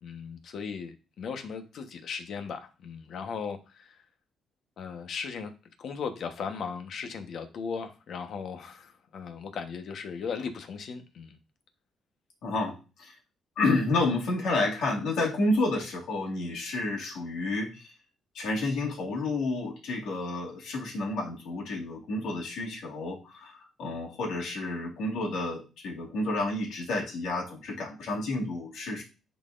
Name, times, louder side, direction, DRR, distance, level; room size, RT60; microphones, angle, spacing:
voice 1, 0.0-3.9 4.8-5.5 5.8-11.4, left 6 dB, 65° left, 7 dB, 1.1 m, -37 dB
voice 2, 12.4-13.2 13.6-17.9 18.3-29.0, left 2 dB, 80° left, -2 dB, 2.2 m, -30 dB
10.5 x 4.1 x 2.5 m, 0.33 s
cardioid pair, 90°, 0 cm